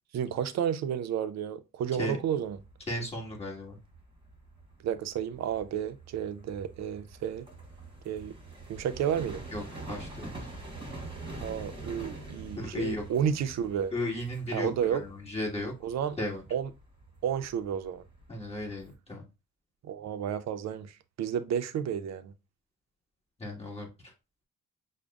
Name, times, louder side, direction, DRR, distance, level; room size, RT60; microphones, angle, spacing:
voice 1, 0.1-2.6 4.8-7.5 8.1-8.4 8.7-9.4 11.4-13.9 14.5-15.0 15.8-16.2 16.5-16.7 17.2-18.0 19.8-22.3, right 8 dB, 60° right, 0.5 m, -31 dB
sound 1, 2.4-18.9, right 2 dB, 15° right, 1.3 m, -46 dB
voice 2, 2.9-3.8 9.5-9.6 9.9-10.3 12.5-13.0 13.9-15.7 16.2-16.4 18.3-19.2 23.4-24.1, left 1 dB, 20° left, 1.6 m, -35 dB
6.2 x 2.1 x 2.3 m
cardioid pair, 90°, 30 cm